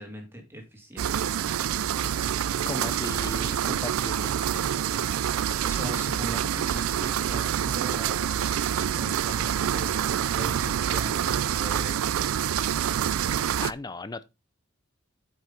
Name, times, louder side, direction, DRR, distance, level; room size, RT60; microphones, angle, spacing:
voice 1, 0.0-1.5 5.6-12.3, right 1 dB, 10° right, 2.2 m, -41 dB
sound 1, 1.0-13.7, right 9 dB, 80° right, 0.4 m, -27 dB
Fireworks, 2.0-2.5 3.0-4.0 4.4-5.2 5.5-6.2 6.8-8.7 9.3-9.9 10.4-10.8 11.3-12.0, left 3 dB, 80° left, 1.9 m, -50 dB
voice 2, 2.6-4.3 13.6-14.3, left 3 dB, 20° left, 0.4 m, -36 dB
9.2 x 5.4 x 3.8 m
head